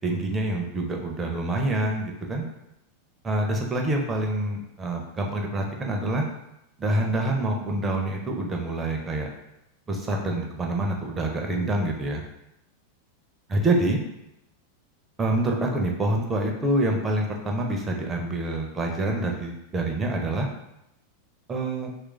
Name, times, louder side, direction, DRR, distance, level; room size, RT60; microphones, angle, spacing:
voice 1, 0.0-2.5 3.2-6.2 6.8-9.3 9.9-12.2 13.5-14.0 15.2-20.5 21.5-21.9, right 1 dB, 20° right, 1 dB, 0.6 m, -26 dB
3.1 x 2.5 x 3.2 m, 0.85 s
figure-of-eight pair, 90°, 0 cm